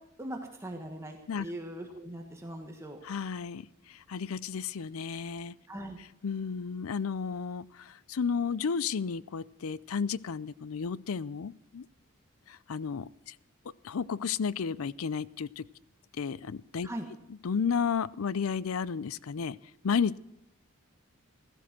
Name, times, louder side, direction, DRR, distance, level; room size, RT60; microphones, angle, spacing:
voice 1, 0.2-3.0 5.7-6.0 16.8-17.1, right 1 dB, 15° right, 2 dB, 1.4 m, -40 dB
voice 2, 3.0-3.7 4.1-5.5 6.2-11.8 12.5-13.3 13.8-15.6 16.2-16.9 17.4-19.6 19.8-20.2, left 6 dB, 70° left, 20 dB, 0.5 m, -32 dB
16.5 x 13.0 x 6.1 m, 0.80 s
head